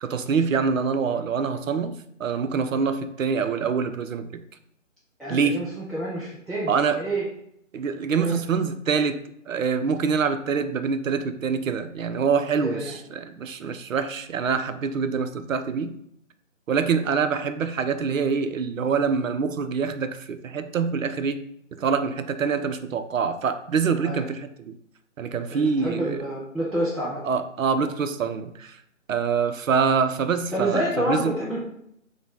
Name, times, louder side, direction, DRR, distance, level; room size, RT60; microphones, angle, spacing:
voice 1, 0.0-4.4 5.3-5.6 6.7-7.0 7.7-16.0 16.7-21.4 21.7-24.7 25.2-26.2 27.2-28.8 29.1-31.4, right 5 dB, 75° right, 9 dB, 0.5 m, -25 dB
voice 2, 5.2-7.3 8.1-8.4 12.5-13.0 24.0-24.3 25.5-27.2 30.5-31.6, right 1 dB, ahead, -10 dB, 0.4 m, -28 dB
4.8 x 2.1 x 3.5 m, 0.72 s
hypercardioid pair, 175°, 40 cm